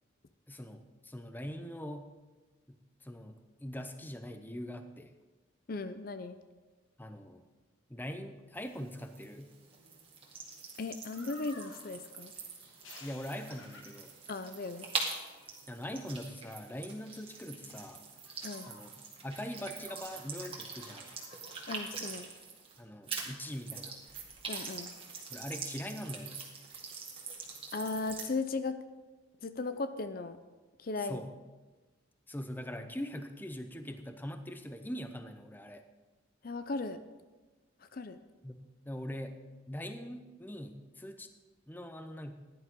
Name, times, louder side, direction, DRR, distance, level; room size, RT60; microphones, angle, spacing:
voice 1, 0.5-2.1 2.7-5.1 7.0-7.4 7.9-9.5 13.0-14.1 15.7-18.0 18.7-18.9 19.2-21.1 22.8-23.9 25.3-26.5 31.0-31.3 32.3-35.8 38.4-38.5 38.9-39.4 39.7-41.3 41.7-42.3, equal, 10° left, 8 dB, 0.7 m, -42 dB
voice 2, 5.7-6.4 10.8-12.3 14.3-14.9 18.4-18.7 21.7-22.3 24.5-24.9 27.7-28.8 29.4-30.4 30.8-31.2 36.4-37.0 37.8-38.2, left 3 dB, 45° left, 10 dB, 0.5 m, -37 dB
sound 1, 8.5-22.8 23.1-28.3, right 4 dB, 30° right, 1.9 m, -44 dB
sound 2, 11.1-21.6, left 3 dB, 85° left, 1.7 m, -58 dB
15.5 x 11.0 x 3.7 m, 1.2 s
head